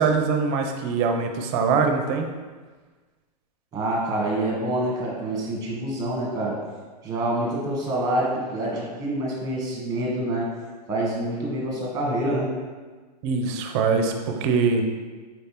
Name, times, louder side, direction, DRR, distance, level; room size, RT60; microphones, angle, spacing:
voice 1, 0.0-2.3 13.2-14.9, right 5 dB, 40° right, 4 dB, 0.5 m, -23 dB
voice 2, 3.7-6.6 7.0-10.5 10.9-12.5, right 1 dB, 20° right, -3 dB, 1.3 m, -26 dB
4.5 x 3.2 x 2.9 m, 1.4 s
hypercardioid pair, 120°, 21 cm